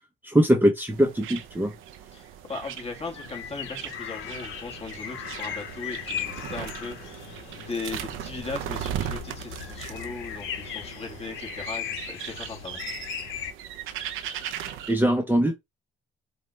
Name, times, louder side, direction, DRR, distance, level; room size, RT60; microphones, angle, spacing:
voice 1, 0.2-1.7 14.9-15.5, equal, 10° right, 0.8 m, -21 dB
sound 1, 0.9-14.9, right 10 dB, 85° right, 0.6 m, -38 dB
voice 2, 2.1-12.8, left 4 dB, 30° left, 1.7 m, -38 dB
sound 2, 3.2-13.5, left 9 dB, 85° left, 0.8 m, -38 dB
5.3 x 2.4 x 3.1 m
cardioid pair, 90°, 20 cm